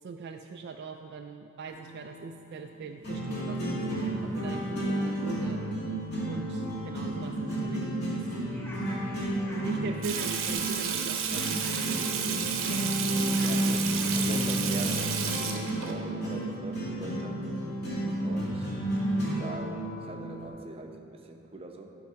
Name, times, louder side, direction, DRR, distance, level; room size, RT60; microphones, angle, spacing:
voice 1, 0.0-5.6 6.2-8.3 9.5-12.8 19.5-19.6, right 4 dB, 55° right, 5 dB, 0.3 m, -42 dB
sound 1, 1.7-20.5, right 1 dB, 50° left, 2.3 m, -32 dB
sound 2, 8.5-14.2, equal, 10° left, 1.0 m, -47 dB
Water tap faucet / Sink (filling or washing), 10.0-15.9, right 7 dB, 70° right, 0.8 m, -32 dB
voice 2, 13.4-17.4 18.2-18.7 19.4-19.7 20.0-21.9, right 2 dB, 30° right, 3 dB, 0.7 m, -42 dB
11.5 x 4.6 x 5.7 m, 2.7 s
head